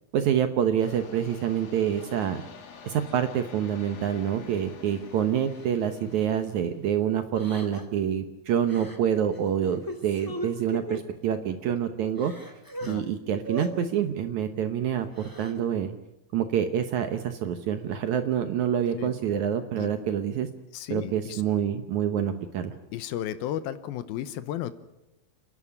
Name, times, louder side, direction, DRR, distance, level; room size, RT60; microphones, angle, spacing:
voice 1, 0.1-2.4 2.8-12.3 12.9-15.9 16.3-20.5 20.9-22.7, right 9 dB, 65° right, 8 dB, 2.0 m, -27 dB
sound 1, 0.8-6.9, left 6 dB, 50° left, 2.6 m, -48 dB
Crying sobbing, 5.5-5.7 6.1-6.4 7.3-8.0 8.7-9.0 9.3-11.0 11.6-11.7 12.0-12.9 13.4-13.7 15.0-15.6, equal, 10° left, 1.4 m, -38 dB
voice 2, 20.7-21.4 22.9-24.7, left 12 dB, 85° left, 12 dB, 2.7 m, -33 dB
29.0 x 11.0 x 9.9 m, 0.94 s
omnidirectional pair, 4.2 m